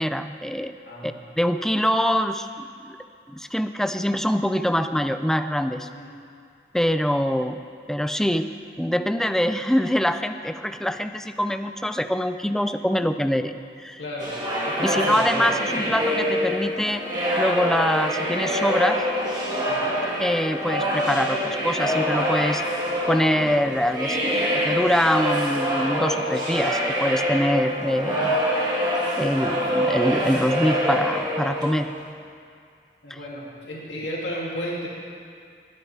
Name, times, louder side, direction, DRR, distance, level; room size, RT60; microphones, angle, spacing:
voice 1, 0.0-0.7 1.0-3.0 3.3-5.9 6.7-7.6 7.9-8.5 8.8-14.0 14.8-17.0 17.4-19.0 20.2-22.6 23.1-28.4 29.1-31.9 33.1-33.2, equal, 5° left, 9 dB, 0.4 m, -24 dB
voice 2, 0.9-1.2 6.0-6.1 14.0-14.3 14.6-15.5 19.6-19.9 33.0-34.9, equal, 80° left, -5 dB, 2.6 m, -33 dB
sound 1, 14.2-32.1, equal, 25° right, 1.7 m, -25 dB
20.5 x 10.0 x 3.4 m, 2.3 s
head